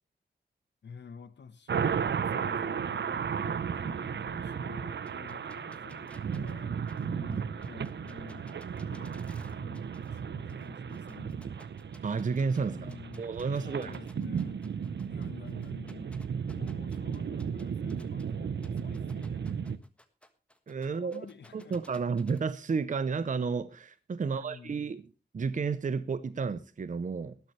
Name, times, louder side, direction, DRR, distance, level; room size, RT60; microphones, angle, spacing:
voice 1, 0.8-8.6 8.9-9.3 9.5-9.8 10.1-11.4 12.6-16.2 16.5-19.5 20.9-22.0 24.1-24.8, left 6 dB, 85° left, 1.3 m, -50 dB
sound 1, 1.7-19.8, right 7 dB, 85° right, 0.8 m, -35 dB
sound 2, 5.0-10.2 10.5-12.6 12.9-18.2 18.6-22.4, left 1 dB, 5° left, 1.4 m, -58 dB
voice 2, 12.0-14.0 20.7-21.2 21.5-25.1 25.3-27.4, right 5 dB, 45° right, 0.7 m, -32 dB
19.0 x 13.0 x 3.2 m
wide cardioid pair, 145°, 18 cm